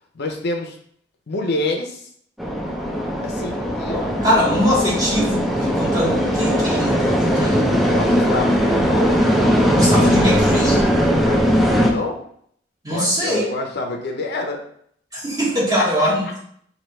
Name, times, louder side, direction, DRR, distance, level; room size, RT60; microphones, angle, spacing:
voice 1, 0.1-0.8 1.3-2.1 3.2-4.1 7.9-9.3 11.2-12.2 12.9-14.6 15.8-16.4, left 2 dB, 60° left, 2 dB, 0.6 m, -27 dB
sound 1, 2.4-11.9, equal, ahead, 0.4 m, -19 dB
voice 2, 4.2-7.9 9.7-10.8 12.8-13.5 15.1-16.4, equal, 20° right, -6 dB, 1.5 m, -21 dB
3.2 x 2.8 x 4.2 m, 0.64 s
head